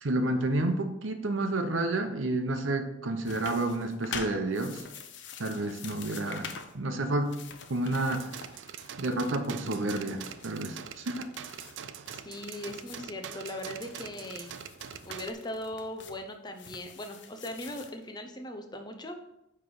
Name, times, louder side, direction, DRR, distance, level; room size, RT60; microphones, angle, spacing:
voice 1, 0.0-4.8 5.4-7.4 7.7-8.3 9.0-11.2, right 2 dB, 85° right, 7 dB, 0.8 m, -30 dB
sound 1, 3.2-6.8 7.1-13.0 13.5-18.0, left 6 dB, 65° left, 0.6 m, -46 dB
sound 2, 8.1-15.3, right 8 dB, 70° right, 0.4 m, -43 dB
voice 2, 12.1-14.6 15.1-19.2, left 1 dB, 20° left, 5 dB, 0.6 m, -39 dB
9.6 x 3.3 x 3.9 m, 0.87 s
head